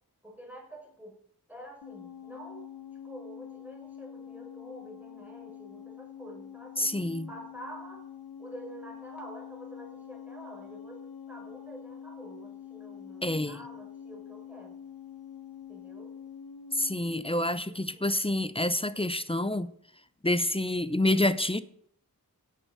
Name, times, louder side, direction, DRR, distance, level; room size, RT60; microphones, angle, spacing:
voice 1, 0.2-1.2 1.5-2.7 3.0-6.9 7.3-8.1 8.4-14.8 15.7-16.2 17.6-18.1, equal, 5° right, 5.4 m, -47 dB
sound 1, 1.8-17.2, left 8 dB, 85° left, 1.3 m, -46 dB
voice 2, 6.8-7.3 13.2-13.6 16.7-19.7 20.2-21.6, left 1 dB, 15° left, 0.7 m, -28 dB
16.5 x 9.4 x 5.1 m
wide cardioid pair, 65°, 36 cm